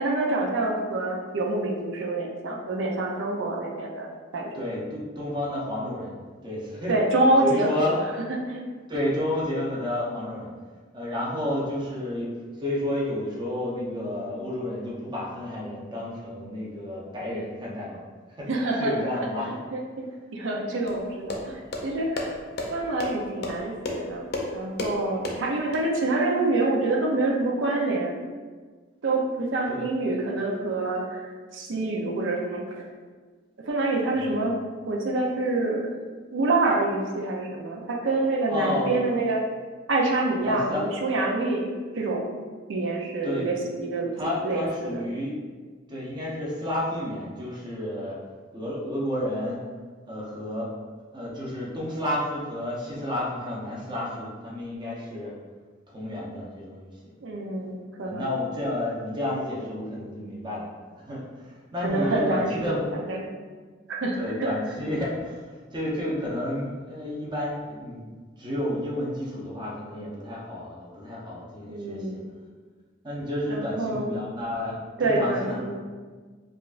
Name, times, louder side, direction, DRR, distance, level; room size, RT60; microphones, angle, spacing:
voice 1, 0.0-4.7 6.9-8.0 8.5-8.6 18.5-20.1 20.3-22.2 22.7-24.3 24.5-28.1 29.0-32.6 33.6-34.6 34.9-36.0 36.3-39.4 39.9-42.4 42.7-44.1 44.4-45.1 57.2-58.3 61.8-62.8 63.1-63.3 63.9-64.5 71.7-72.2 73.5-74.2 75.0-75.8, right 2 dB, 85° right, -1 dB, 0.6 m, -26 dB
voice 2, 4.5-6.1 6.4-7.0 7.4-8.0 8.9-10.5 10.9-12.3 12.6-18.0 18.3-19.5 29.7-29.8 34.1-34.3 38.5-39.0 40.4-40.9 43.2-43.5 44.2-45.6 45.9-48.2 48.5-49.6 50.1-50.7 51.1-55.3 55.9-56.9 58.0-60.7 61.0-63.0 64.1-65.4 65.7-68.0 68.4-72.2 73.0-75.6, left 1 dB, 25° right, -5 dB, 0.7 m, -31 dB
sound 1, 20.9-25.8, left 2 dB, 55° left, 0.6 m, -34 dB
4.9 x 2.4 x 2.4 m, 1.4 s
head